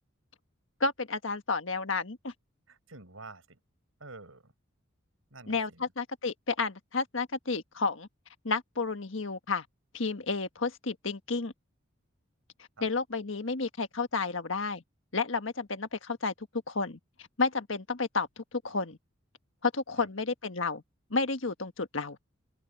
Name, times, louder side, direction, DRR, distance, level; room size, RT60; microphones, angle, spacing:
voice 1, 0.8-2.3 5.5-8.1 8.4-9.6 9.9-11.5 12.8-14.8 15.1-16.3 16.7-19.0 19.6-20.8 21.1-22.2, left 4 dB, 70° left, 1.6 m, -31 dB
voice 2, 2.7-3.6 4.0-4.5 5.3-5.8 12.8-12.9 20.0-20.1, right 3 dB, 85° right, 6.0 m, -49 dB
open air
head